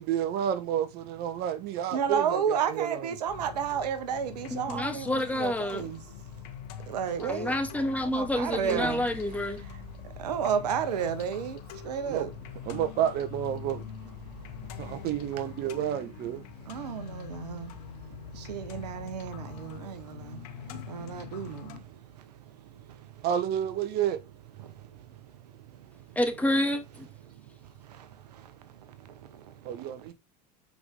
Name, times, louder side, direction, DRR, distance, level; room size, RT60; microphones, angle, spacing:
voice 1, 0.0-3.1 8.7-8.9 12.0-12.2 12.7-13.8 14.8-16.4 23.2-24.2 29.6-30.1, right 10 dB, 50° right, 1.3 m, -30 dB
voice 2, 1.9-6.0 6.9-7.5 8.0-9.0 10.2-11.6 11.8-12.3 16.7-17.7 18.5-20.2 20.9-21.7, right 7 dB, 80° right, 1.1 m, -31 dB
sound 1, 3.3-21.8, left 7 dB, 70° left, 1.7 m, -43 dB
voice 3, 4.5-5.8 7.2-9.6 26.2-27.1, left 1 dB, 5° left, 2.1 m, -29 dB
8.0 x 5.1 x 3.6 m
hypercardioid pair, 85°, 20 cm